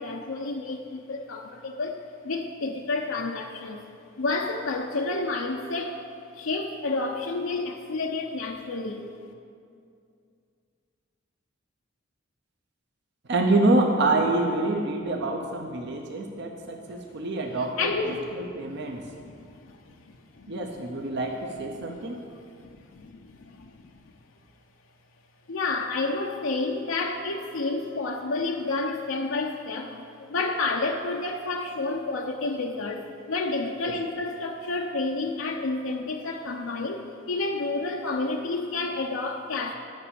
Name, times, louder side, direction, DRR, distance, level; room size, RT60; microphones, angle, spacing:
voice 1, 0.0-2.0 2.2-3.8 4.2-6.0 6.3-9.0 17.8-18.6 18.9-20.6 21.7-22.0 22.6-24.0 25.5-39.8, left 3 dB, 75° left, 2 dB, 0.6 m, -30 dB
voice 2, 13.3-19.1 20.5-22.2 33.9-34.0, right 2 dB, 55° right, 2 dB, 0.7 m, -26 dB
9.6 x 5.9 x 6.9 m, 2.4 s
head